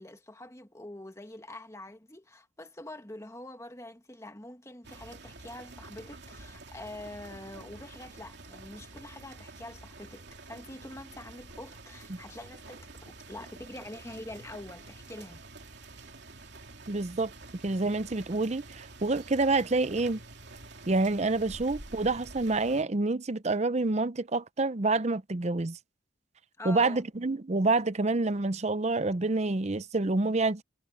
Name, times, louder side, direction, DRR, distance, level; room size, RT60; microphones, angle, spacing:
voice 1, 0.0-15.4 26.6-27.0, left 1 dB, 15° left, 1.7 m, -45 dB
sound 1, 4.8-22.8, right 3 dB, 55° right, 3.2 m, -48 dB
voice 2, 16.9-17.3 17.6-20.2 20.9-25.8 26.6-30.6, right 3 dB, 35° right, 0.6 m, -27 dB
head